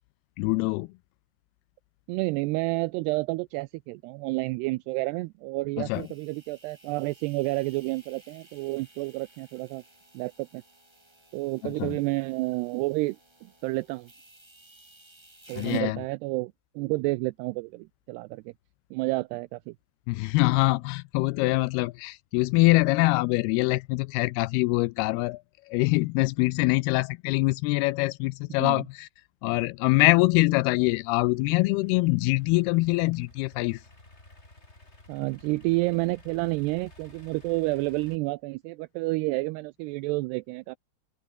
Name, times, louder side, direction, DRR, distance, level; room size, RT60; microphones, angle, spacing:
voice 1, 0.4-0.9 5.8-6.1 11.6-12.0 15.6-16.0 20.1-25.4 25.7-29.1 29.4-33.8, left 22 dB, 85° left, 2.3 m, -24 dB
voice 2, 2.1-9.8 10.1-10.6 11.3-14.1 15.5-18.5 18.9-19.8 28.6-28.8 35.1-40.8, right 23 dB, 80° right, 2.5 m, -30 dB
sound 1, 5.9-15.8, right 2 dB, 40° right, 0.3 m, -57 dB
Idling / Accelerating revving vroom, 31.0-38.2, left 2 dB, 15° left, 4.9 m, -54 dB
open air
omnidirectional pair, 5.0 m